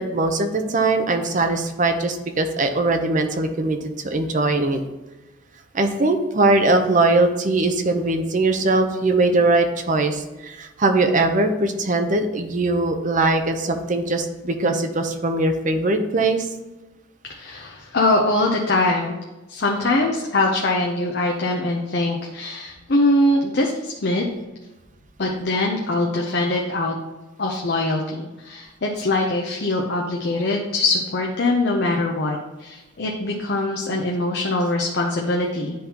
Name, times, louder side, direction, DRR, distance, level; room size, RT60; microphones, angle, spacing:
voice 1, 0.0-4.8 5.7-16.5, right 2 dB, 40° right, 6 dB, 0.6 m, -21 dB
voice 2, 17.2-19.2 19.5-24.3 25.2-26.9 27.4-35.7, left 2 dB, 55° left, 0 dB, 0.7 m, -22 dB
10.0 x 3.7 x 2.9 m, 1.1 s
head